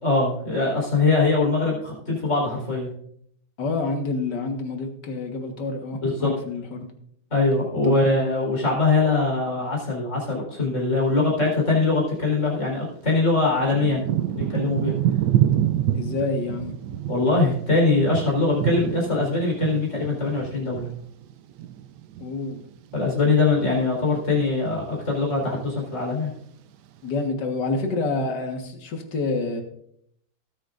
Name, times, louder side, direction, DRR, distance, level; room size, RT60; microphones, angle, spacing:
voice 1, 0.0-2.9 6.0-6.3 7.3-14.0 14.3-14.9 17.1-20.9 22.9-26.3, left 3 dB, 35° left, -2 dB, 4.7 m, -22 dB
voice 2, 3.6-6.9 7.8-8.0 15.9-16.7 22.2-22.6 27.0-29.6, left 3 dB, 55° left, 4 dB, 2.1 m, -28 dB
Thunder / Rain, 12.3-12.4 13.1-22.6 22.9-23.8 24.3-24.7 24.9-25.8 26.4-26.5, right 12 dB, 70° right, 1.1 m, -27 dB
19.0 x 9.0 x 2.6 m, 0.68 s
omnidirectional pair, 2.2 m